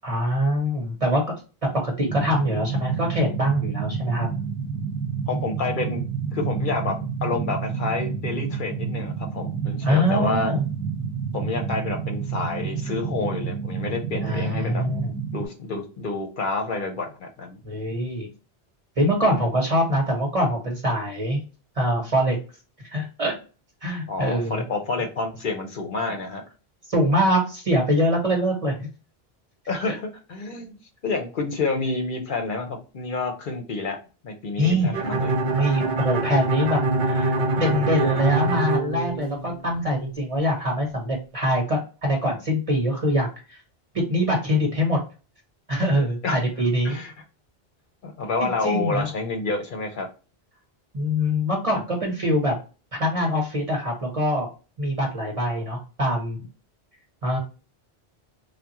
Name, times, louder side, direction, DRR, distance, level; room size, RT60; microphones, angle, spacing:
voice 1, 0.0-1.2 1.8-4.3 9.8-10.6 14.2-15.1 17.6-18.3 19.0-21.4 21.7-22.4 22.9-23.3 23.8-24.6 26.9-28.9 29.8-30.0 34.6-35.0 35.5-43.6 43.9-45.0 45.7-47.0 48.4-49.1 50.9-52.5 52.9-54.5 54.8-56.4 57.2-57.4, equal, 35° right, 0 dB, 1.0 m, -24 dB
sound 1, 2.0-15.5, right 6 dB, 5° left, 1.1 m, -29 dB
voice 2, 5.3-6.1 6.3-6.9 7.2-10.5 11.3-14.8 15.3-17.6 24.1-26.4 29.7-30.8 31.0-34.0 34.2-35.3 46.2-46.4 46.8-47.1 48.0-50.1, left 3 dB, 60° left, 4 dB, 0.8 m, -29 dB
Bowed string instrument, 34.9-39.8, right 2 dB, 55° right, 0.7 m, -24 dB
3.5 x 2.1 x 2.8 m, 0.34 s
omnidirectional pair, 1.1 m